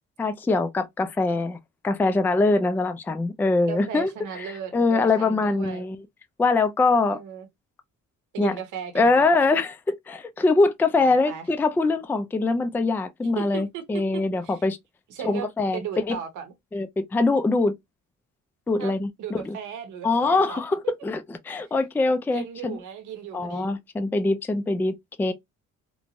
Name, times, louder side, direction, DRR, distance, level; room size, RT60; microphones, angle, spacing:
voice 1, 0.2-1.6 1.8-4.1 4.4-4.5 4.7-6.0 6.4-7.2 8.4-8.5 8.9-14.8 15.2-16.2 16.7-17.7 18.7-19.6 20.0-22.8 23.3-25.3, left 3 dB, 5° left, 0.3 m, -23 dB
voice 2, 3.7-5.8 7.0-7.5 8.3-9.3 11.0-11.4 13.4-13.8 14.1-14.6 15.1-16.5 18.8-20.6 22.3-23.7, right 8 dB, 85° right, 0.9 m, -36 dB
3.0 x 2.2 x 2.5 m
cardioid pair, 90°, 30 cm